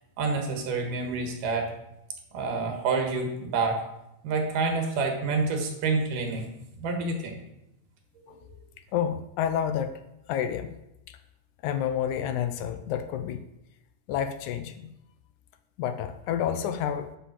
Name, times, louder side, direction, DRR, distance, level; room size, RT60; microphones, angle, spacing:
voice 1, 0.2-1.7 2.3-3.8 4.2-6.5 6.8-7.3, right 4 dB, 85° right, 4 dB, 3.2 m, -28 dB
voice 2, 8.9-10.0 10.3-10.7 11.6-13.4 14.1-14.9 15.8-17.1, left 9 dB, 80° left, 10 dB, 1.9 m, -29 dB
10.0 x 5.1 x 7.4 m, 0.87 s
omnidirectional pair, 3.7 m